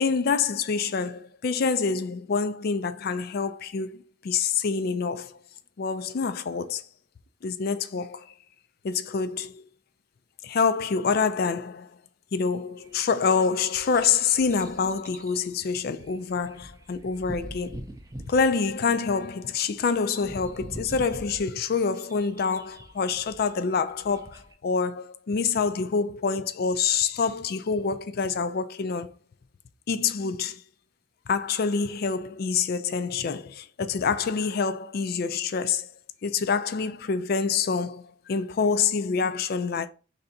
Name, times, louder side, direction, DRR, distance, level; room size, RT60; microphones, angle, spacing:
voice 1, 0.0-5.4 5.8-6.8 7.4-8.3 8.8-9.7 10.4-11.9 12.3-17.8 18.3-29.1 29.9-30.6 31.3-35.9 36.2-39.9, left 5 dB, 50° left, 0.4 m, -26 dB
sound 1, 12.8-24.5, right 1 dB, 15° right, 0.4 m, -44 dB
3.3 x 2.7 x 3.9 m
head